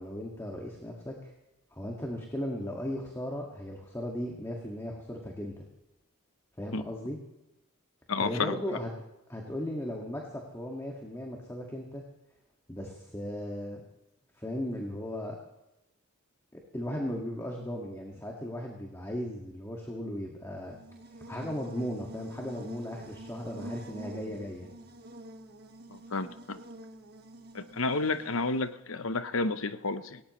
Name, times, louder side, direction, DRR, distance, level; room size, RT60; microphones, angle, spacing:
voice 1, 0.0-1.3 1.8-5.6 6.6-7.2 8.2-8.9 9.3-12.0 12.7-13.8 14.4-15.4 16.7-20.8 21.3-24.7, left 1 dB, 15° left, 0 dB, 1.9 m, -36 dB
voice 2, 8.1-8.6 25.9-26.6 27.5-30.2, left 3 dB, 70° left, 12 dB, 0.9 m, -31 dB
Buzz, 20.6-28.7, right 1 dB, 50° right, 1.5 m, -47 dB
19.0 x 18.0 x 3.2 m, 0.92 s
head